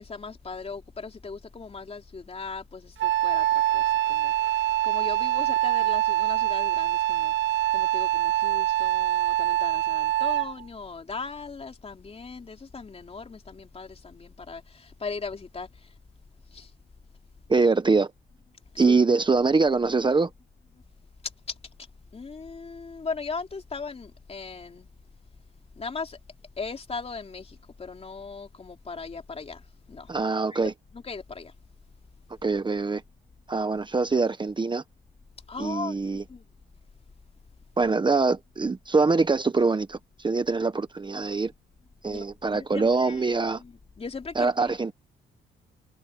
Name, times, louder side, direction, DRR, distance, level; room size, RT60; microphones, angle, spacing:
voice 1, 0.0-3.4 3.7-4.3 4.8-7.3 7.7-15.7 16.5-16.7 18.7-18.9 22.1-24.9 25.8-26.2 26.6-29.6 29.9-30.1 30.5-30.6 30.9-31.5 35.5-36.0 36.3-36.4 42.1-42.2 42.5-44.5, left 4 dB, 30° left, 3.2 m, -38 dB
Wind instrument woodwind instrument, 3.0-10.6, right 14 dB, 70° right, 1.0 m, -24 dB
voice 2, 17.5-18.1 18.8-20.3 30.1-30.7 32.4-33.0 33.5-34.8 35.6-36.2 37.8-41.5 42.0-43.6 44.3-44.9, right 4 dB, 25° right, 1.2 m, -24 dB
cardioid pair, 90°, 20 cm